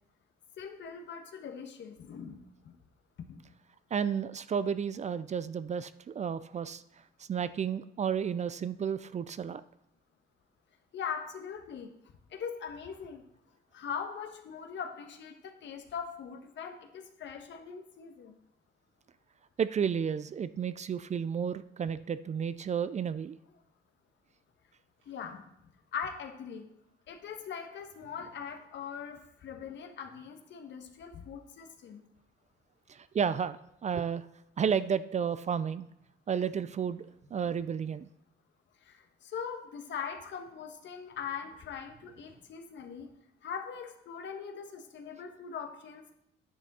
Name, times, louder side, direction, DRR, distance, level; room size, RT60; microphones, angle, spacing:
voice 1, 0.6-2.4 2.6-2.7 3.2-3.5 10.9-11.9 12.3-13.2 13.7-18.4 25.1-25.4 25.9-26.7 27.1-32.0 38.8-43.1 43.4-46.1, left 7 dB, 65° left, 6 dB, 1.3 m, -41 dB
voice 2, 3.9-6.8 7.2-9.6 19.6-23.4 32.9-34.3 34.6-35.9 36.3-37.1 37.3-38.1, right 7 dB, 35° right, 15 dB, 0.4 m, -32 dB
sound 1, 25.0-25.5 25.7-25.8 26.1-26.2 26.4-26.5 27.8-28.6 30.0-30.6 32.8-32.9 33.6-33.7 34.3-34.9 35.3-38.2 40.5-40.6 41.0-42.5, right 1 dB, 80° right, 2.8 m, -63 dB
10.0 x 6.3 x 4.1 m, 0.80 s
cardioid pair, 90°, 20 cm